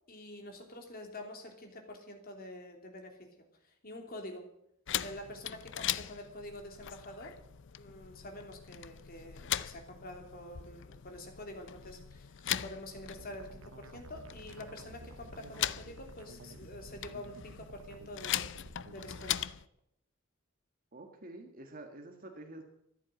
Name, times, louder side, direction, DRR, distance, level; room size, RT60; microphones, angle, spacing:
voice 1, 0.1-3.3 3.6-4.5 5.0-7.4 7.8-18.5 18.9-19.5, left 1 dB, 45° left, 3 dB, 3.1 m, -47 dB
sound 1, 4.9-19.7, left 11 dB, 65° left, 0.5 m, -40 dB
sound 2, 13.2-19.3, right 3 dB, 70° right, 0.9 m, -52 dB
voice 2, 20.9-22.6, right 2 dB, 45° right, 3 dB, 1.7 m, -48 dB
14.0 x 11.0 x 7.8 m, 0.76 s
head